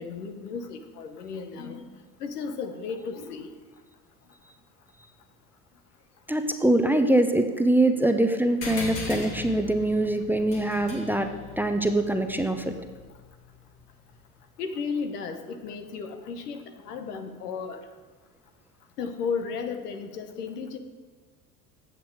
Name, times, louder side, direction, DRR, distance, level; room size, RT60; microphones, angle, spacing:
voice 1, 0.0-1.9 2.2-3.5 14.6-17.8 19.0-20.8, left 5 dB, 90° left, 7 dB, 0.9 m, -34 dB
voice 2, 6.3-11.3 11.6-12.7, right 1 dB, 5° right, 7 dB, 0.7 m, -23 dB
sound 1, 8.6-13.5, left 3 dB, 65° left, 2.6 m, -39 dB
8.5 x 7.5 x 4.7 m, 1.3 s
hypercardioid pair, 70°, 45 cm